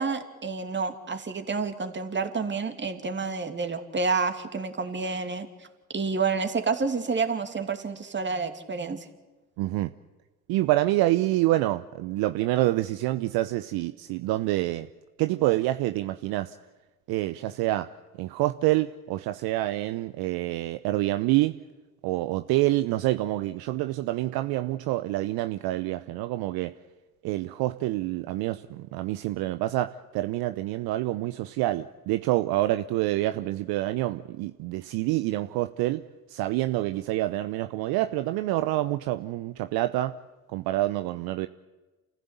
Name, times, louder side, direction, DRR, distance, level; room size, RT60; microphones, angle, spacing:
voice 1, 0.0-5.5 5.9-9.0, right 4 dB, 25° right, 6 dB, 2.6 m, -29 dB
voice 2, 9.6-9.9 10.5-14.9 15.2-16.5 17.1-17.9 18.2-21.6 22.0-26.7 27.2-36.0 36.3-40.1 40.5-41.5, right 16 dB, 60° right, 10 dB, 0.8 m, -27 dB
28.5 x 15.5 x 8.3 m, 1.2 s
hypercardioid pair, 60°, 42 cm